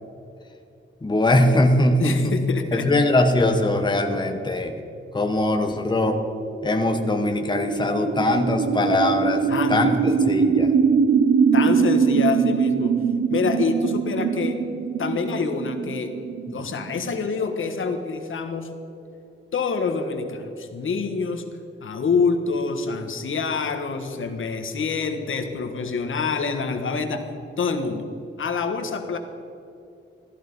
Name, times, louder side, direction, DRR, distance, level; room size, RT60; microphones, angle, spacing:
voice 1, 1.0-2.3 2.7-4.7 5.1-6.2 6.6-9.4 9.7-10.7 16.5-16.6, left 1 dB, 20° left, 4 dB, 1.2 m, -21 dB
voice 2, 2.0-2.9 3.8-3.9 9.5-10.0 11.5-13.0 13.3-14.6 15.0-16.1 16.5-18.7 19.5-21.5 21.8-27.3 27.6-28.1 28.4-29.2, left 4 dB, 75° left, 6 dB, 1.4 m, -26 dB
sound 1, 6.1-17.8, right 6 dB, 85° right, 1.0 m, -23 dB
15.0 x 13.5 x 5.4 m, 2.7 s
wide cardioid pair, 140°, 21 cm